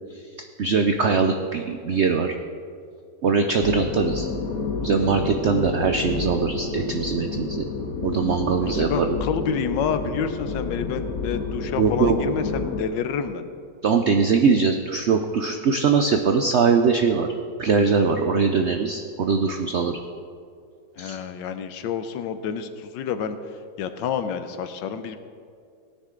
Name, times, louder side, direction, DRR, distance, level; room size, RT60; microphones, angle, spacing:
voice 1, 0.6-2.3 3.2-4.3 4.8-7.6 8.0-9.2 11.8-12.2 13.8-17.3 17.6-20.0 21.0-21.2, right 5 dB, 75° right, 5 dB, 0.6 m, -21 dB
sound 1, 3.6-12.8, left 4 dB, 60° left, 1.5 m, -29 dB
voice 2, 8.6-13.5 21.0-23.4 23.8-25.2, left 7 dB, 85° left, 10 dB, 1.4 m, -28 dB
17.0 x 9.7 x 3.8 m, 2.3 s
omnidirectional pair, 1.9 m